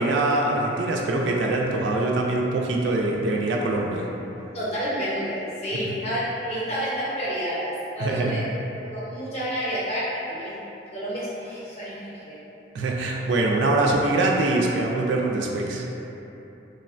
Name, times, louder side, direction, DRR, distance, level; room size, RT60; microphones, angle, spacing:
voice 1, 0.0-4.1 8.0-8.4 12.7-15.8, right 2 dB, 75° right, 0 dB, 0.3 m, -23 dB
voice 2, 4.5-8.4 8.8-10.6 10.9-12.4, equal, 35° left, -9 dB, 0.6 m, -29 dB
3.1 x 2.1 x 2.4 m, 3.0 s
head